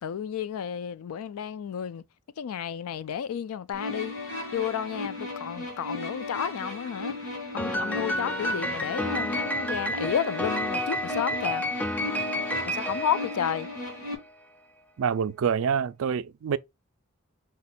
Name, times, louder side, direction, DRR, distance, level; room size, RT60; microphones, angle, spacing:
voice 1, 0.0-2.0 2.4-4.2 4.5-7.2 7.5-11.6 12.7-13.7, left 8 dB, 75° left, 0.3 m, -31 dB
sound 1, 3.7-14.1, left 2 dB, 60° left, 2.0 m, -36 dB
Piano, 7.6-14.1, equal, 5° left, 0.4 m, -31 dB
voice 2, 15.0-16.6, right 7 dB, 65° right, 0.3 m, -26 dB
5.1 x 2.2 x 4.1 m
head